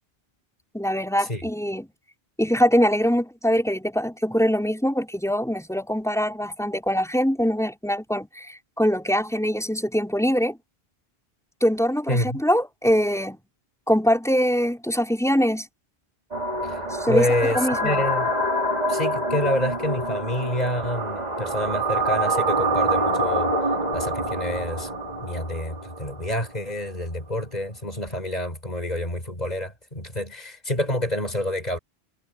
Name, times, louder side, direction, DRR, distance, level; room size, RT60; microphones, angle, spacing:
voice 1, 0.7-1.9 2.4-10.6 11.6-13.4 13.9-15.7 17.0-17.3 17.5-18.1, equal, 5° left, 4.6 m, -23 dB
voice 2, 12.1-12.4 16.6-16.8 17.1-18.3 18.9-23.5 23.9-24.9 25.2-31.8, left 1 dB, 40° left, 6.1 m, -27 dB
sound 1, 16.3-26.4, right 1 dB, 40° right, 2.8 m, -26 dB
omnidirectional pair, 1.0 m